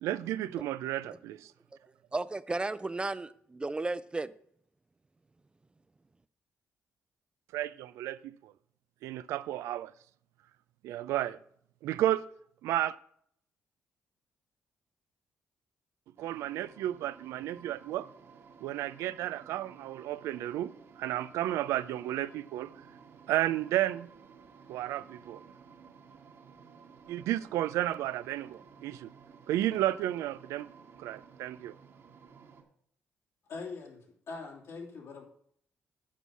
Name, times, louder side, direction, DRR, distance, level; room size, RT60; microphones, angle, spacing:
voice 1, 0.0-1.5 7.5-8.5 9.0-9.9 10.8-11.4 11.8-12.3 12.6-13.0 16.2-18.1 18.6-22.7 23.3-24.1 24.7-25.4 27.1-29.1 29.5-30.7 31.0-31.7, right 13 dB, 90° right, 0.4 m, -32 dB
voice 2, 2.1-4.3, right 2 dB, 20° right, 0.4 m, -34 dB
sound 1, 16.2-32.6, right 6 dB, 65° right, 1.8 m, -55 dB
voice 3, 33.5-35.2, left 4 dB, 75° left, 3.0 m, -42 dB
8.5 x 5.4 x 7.2 m
cardioid pair, 80°, 5 cm